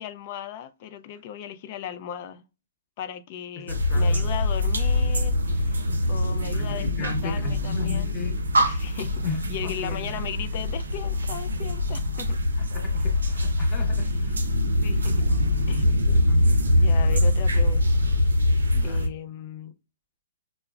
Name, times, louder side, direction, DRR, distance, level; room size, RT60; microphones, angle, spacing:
voice 1, 0.0-2.4 3.0-8.2 8.6-9.2 9.5-12.4 14.0-14.1 14.8-15.2 15.7-15.9 16.7-17.8 18.8-19.7, left 9 dB, 40° left, 0.4 m, -37 dB
voice 2, 3.6-4.3 5.9-6.0 6.5-8.4 9.2-10.1 12.6-14.4 15.9-16.6 18.7-19.0, left 5 dB, 25° left, 0.9 m, -36 dB
sound 1, 3.7-19.1, left 1 dB, 85° right, 0.5 m, -23 dB
5.5 x 2.1 x 2.3 m
hypercardioid pair, 135°, 0 cm